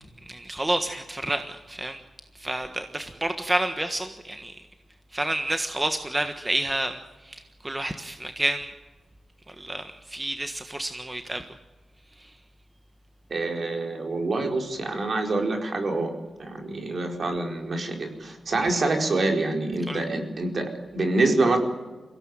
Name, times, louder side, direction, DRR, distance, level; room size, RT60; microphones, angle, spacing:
voice 1, 0.3-2.0 2.4-4.6 5.1-7.0 7.2-8.7 9.5-11.4 19.9-20.0, right 1 dB, 20° right, 7 dB, 1.5 m, -29 dB
voice 2, 13.3-16.1 16.4-21.6, right 2 dB, 55° right, 3 dB, 4.5 m, -26 dB
23.5 x 17.0 x 9.1 m, 1.3 s
cardioid pair, 70°, 0 cm